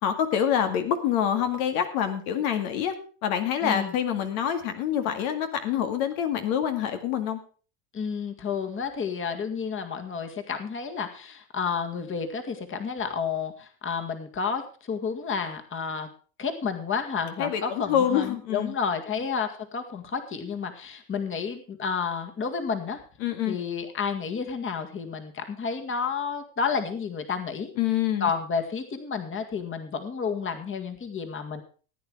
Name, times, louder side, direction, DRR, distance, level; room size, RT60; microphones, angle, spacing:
voice 1, 0.0-2.9 3.2-7.4 17.4-18.7 23.2-23.6 27.8-28.3, left 9 dB, 75° left, 7 dB, 2.2 m, -26 dB
voice 2, 3.6-3.9 7.9-16.1 16.4-23.0 23.5-27.7 28.2-31.6, left 6 dB, 25° left, 6 dB, 1.9 m, -31 dB
15.5 x 9.2 x 4.9 m, 0.38 s
supercardioid pair, 115°, 44 cm